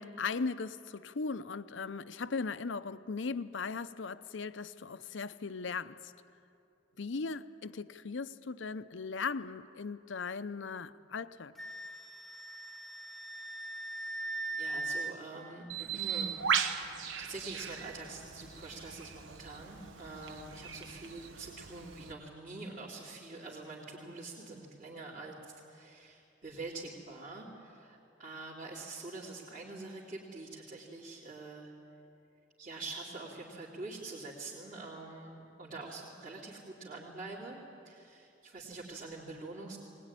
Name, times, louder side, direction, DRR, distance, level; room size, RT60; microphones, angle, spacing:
voice 1, 0.0-6.1 7.0-11.5, left 4 dB, 75° left, 0.7 m, -38 dB
Wind instrument woodwind instrument, 11.6-15.1, right 2 dB, ahead, 0.5 m, -39 dB
voice 2, 14.6-31.7 32.6-39.8, right 3 dB, 45° right, 3.1 m, -45 dB
Bird, 15.7-22.1, right 7 dB, 90° right, 1.2 m, -38 dB
21.0 x 20.0 x 9.9 m
head